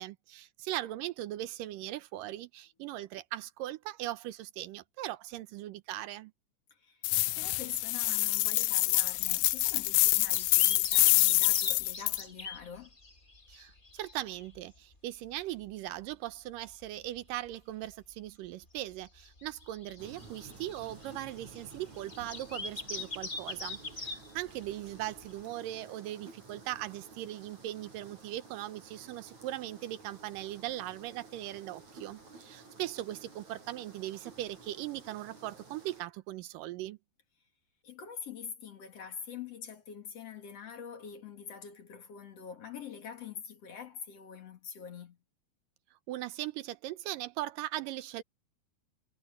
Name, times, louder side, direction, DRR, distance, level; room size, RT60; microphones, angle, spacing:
voice 1, 0.0-6.3 13.5-37.0 46.1-48.2, right 14 dB, 85° right, 2.5 m, -39 dB
voice 2, 6.7-13.0 37.8-45.2, left 7 dB, 50° left, 3.0 m, -45 dB
sound 1, 7.0-12.2, left 19 dB, 80° left, 1.8 m, -26 dB
sound 2, 9.0-15.0 15.2-15.3 15.6-15.7 16.0-16.1 16.7-17.5 17.8-17.9 18.6-25.3, left 3 dB, 25° left, 1.1 m, -43 dB
sound 3, 20.0-36.0, right 3 dB, 60° right, 7.4 m, -53 dB
omnidirectional pair, 3.8 m